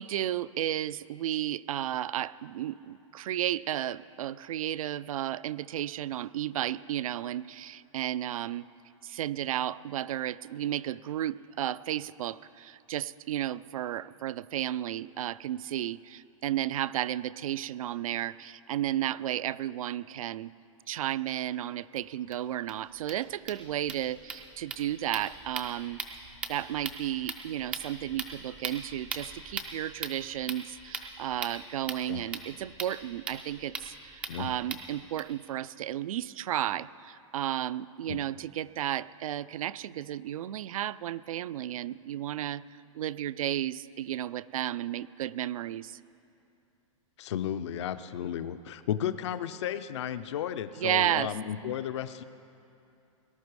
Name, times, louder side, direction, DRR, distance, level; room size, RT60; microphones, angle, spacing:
voice 1, 0.0-8.7 9.0-20.5 20.9-42.6 42.9-46.0 50.8-51.3, right 12 dB, 80° right, 18 dB, 0.4 m, -33 dB
sound 1, 22.0-22.1 22.3-22.4 22.7-22.8 23.0-35.2, right 5 dB, 5° right, 0.3 m, -40 dB
voice 2, 47.2-52.2, left 10 dB, 55° left, 11 dB, 0.5 m, -33 dB
19.0 x 11.5 x 4.7 m, 2.7 s
supercardioid pair, 175°, 17 cm